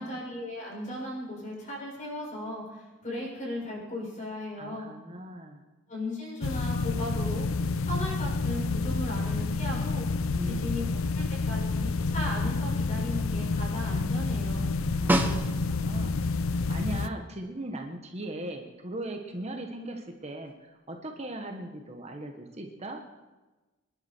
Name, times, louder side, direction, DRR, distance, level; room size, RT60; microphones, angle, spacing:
voice 1, 0.0-4.9 5.9-7.5 7.8-10.1 10.4-10.9 11.1-14.7, left 1 dB, 35° left, -3 dB, 6.9 m, -37 dB
voice 2, 4.6-5.6 10.3-10.8 14.5-23.0, right 1 dB, 30° right, 3 dB, 1.3 m, -39 dB
sound 1, 6.4-17.1, left 3 dB, 75° left, 0.6 m, -29 dB
Snare drum, 15.1-16.0 20.5-20.6, right 1 dB, 10° right, 1.1 m, -27 dB
26.0 x 11.0 x 4.5 m, 1.2 s
head